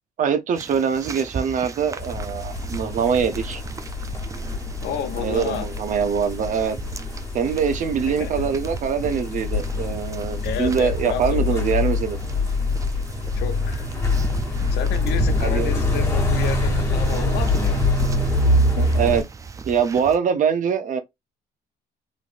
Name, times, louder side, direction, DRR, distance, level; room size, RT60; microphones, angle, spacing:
voice 1, 0.2-3.6 5.2-6.8 7.3-12.2 15.4-15.7 18.8-19.2 19.7-21.0, right 7 dB, 50° right, 0.7 m, -23 dB
sound 1, 0.5-20.2, right 5 dB, 20° right, 0.3 m, -35 dB
sound 2, 2.0-19.2, left 2 dB, 15° left, 1.6 m, -25 dB
voice 2, 4.8-5.7 8.1-8.3 10.4-11.6 13.4-13.9 14.7-17.9, left 8 dB, 75° left, 0.7 m, -31 dB
3.2 x 2.6 x 2.5 m
cardioid pair, 110°, 17 cm